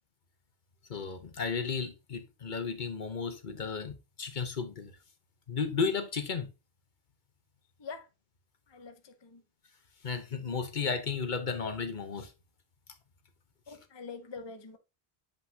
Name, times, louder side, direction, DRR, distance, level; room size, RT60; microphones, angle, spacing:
voice 1, 0.9-4.9 5.5-6.5 10.0-12.3, left 5 dB, 50° left, 1.1 m, -34 dB
voice 2, 8.7-9.4 13.7-14.8, left 4 dB, 30° left, 0.6 m, -45 dB
7.8 x 5.1 x 2.8 m
omnidirectional pair, 1.0 m